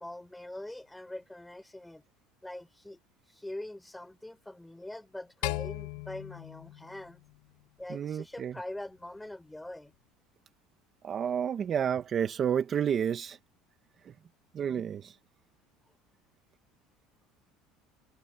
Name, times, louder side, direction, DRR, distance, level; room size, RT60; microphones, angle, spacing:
voice 1, 0.0-2.0 2.4-3.0 3.3-7.2 7.8-9.9, left 1 dB, 5° left, 5.4 m, -43 dB
sound 1, 5.4-7.8, left 20 dB, 80° left, 0.8 m, -38 dB
voice 2, 7.9-8.5 11.0-13.4 14.0-14.1 14.5-15.2, right 8 dB, 35° right, 1.1 m, -30 dB
cardioid pair, 135°, 0 cm